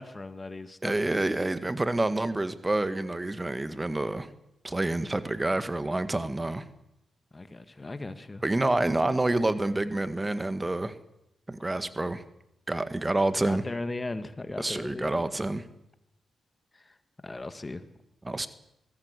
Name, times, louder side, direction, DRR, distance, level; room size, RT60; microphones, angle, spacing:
voice 1, 0.0-1.2 7.3-8.4 13.4-15.2 16.7-16.9 17.2-17.8, left 2 dB, 30° left, 11 dB, 1.7 m, -38 dB
voice 2, 0.8-4.3 4.6-6.7 8.4-10.9 11.5-12.2 12.7-13.6 14.6-15.6 18.2-18.5, right 2 dB, 20° right, 12 dB, 1.7 m, -28 dB
23.0 x 15.5 x 8.3 m, 0.85 s
cardioid pair, 60°, 0 cm